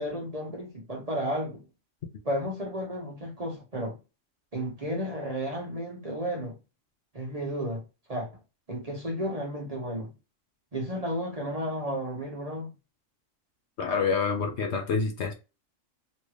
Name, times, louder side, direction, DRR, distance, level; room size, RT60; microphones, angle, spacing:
voice 1, 0.0-1.7 2.2-4.0 4.5-6.5 7.1-7.8 8.1-8.3 8.7-10.1 10.7-12.7, equal, 35° right, 0.8 m, -33 dB
voice 2, 13.8-15.3, left 5 dB, 60° left, 0.9 m, -27 dB
3.1 x 2.6 x 3.1 m
omnidirectional pair, 1.4 m